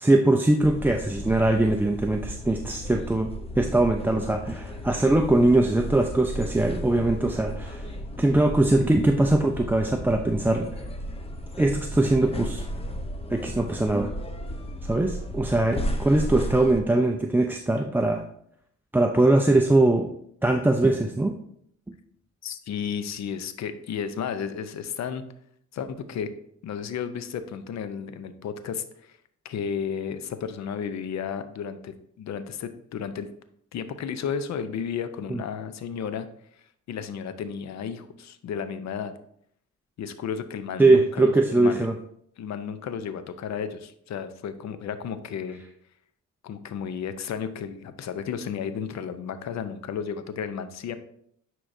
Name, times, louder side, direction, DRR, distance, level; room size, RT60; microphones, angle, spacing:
voice 1, 0.0-7.9 8.2-10.8 11.6-12.6 13.3-14.1 14.8-18.2 18.9-20.1 20.4-21.3 35.3-35.4 40.8-41.9, right 2 dB, 5° right, 4 dB, 0.4 m, -21 dB
sound 1, 0.6-16.8, equal, 20° left, 0.8 m, -35 dB
voice 2, 22.4-25.2 25.7-26.3 26.6-29.2 29.4-33.3 33.7-36.3 36.6-39.1 40.0-41.9 42.4-45.6 46.4-51.0, left 7 dB, 65° left, 11 dB, 0.7 m, -33 dB
9.9 x 4.6 x 2.7 m, 0.69 s
cardioid pair, 90°, 30 cm